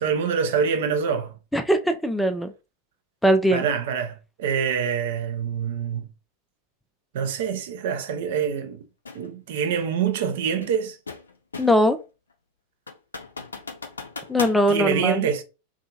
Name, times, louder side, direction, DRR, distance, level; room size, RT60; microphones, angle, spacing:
voice 1, 0.0-1.4 3.5-6.1 7.1-8.9 9.1-11.0 14.7-15.4, right 7 dB, 55° right, 0.5 m, -25 dB
voice 2, 1.5-2.5 3.2-3.6 11.6-12.0 14.3-15.2, equal, 5° left, 0.4 m, -20 dB
sound 1, 9.1-9.3 10.6-11.9 12.3-12.4 12.9-14.6, left 4 dB, 75° left, 0.5 m, -37 dB
2.6 x 2.3 x 2.8 m
figure-of-eight pair, 90°, 0 cm